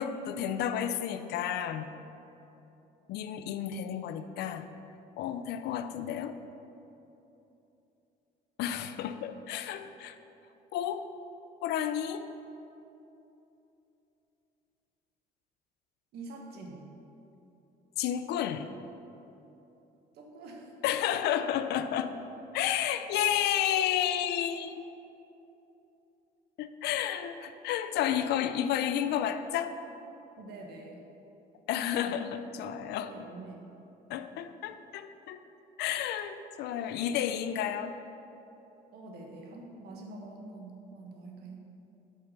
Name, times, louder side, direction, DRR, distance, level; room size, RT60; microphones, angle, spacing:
voice 1, 0.0-1.9 3.1-4.7 5.2-6.4 8.6-10.2 10.7-11.1 11.6-12.2 18.0-18.7 20.8-22.1 22.5-24.9 26.6-29.8 31.7-33.1 34.1-35.4 35.8-38.0, left 10 dB, 80° left, 10 dB, 0.5 m, -31 dB
voice 2, 16.1-16.9 20.1-20.7 30.4-31.0 33.0-33.7 38.9-41.6, right 2 dB, 75° right, 1 dB, 1.3 m, -45 dB
5.8 x 5.5 x 6.4 m, 2.9 s
cardioid pair, 110°, 17 cm